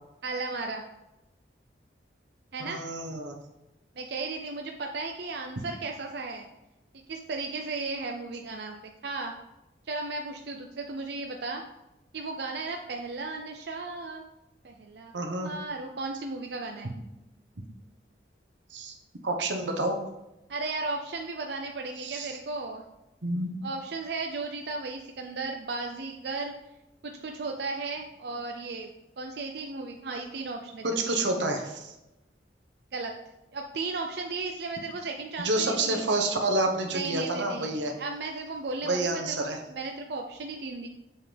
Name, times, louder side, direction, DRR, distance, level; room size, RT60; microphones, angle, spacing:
voice 1, 0.2-0.8 2.5-2.8 4.0-6.5 7.1-9.3 9.9-11.6 12.1-14.2 14.6-16.9 20.5-22.8 23.6-26.5 27.0-28.9 29.2-31.3 32.9-33.1 33.5-36.0 36.9-40.9, right 3 dB, 60° right, 3 dB, 0.5 m, -35 dB
voice 2, 2.6-3.4 15.1-15.5 18.7-18.9 19.2-20.0 22.0-22.4 23.2-23.6 30.8-31.9 35.4-38.0 38.8-39.6, right 2 dB, 80° right, 3 dB, 1.1 m, -29 dB
7.1 x 5.7 x 3.4 m, 0.94 s
head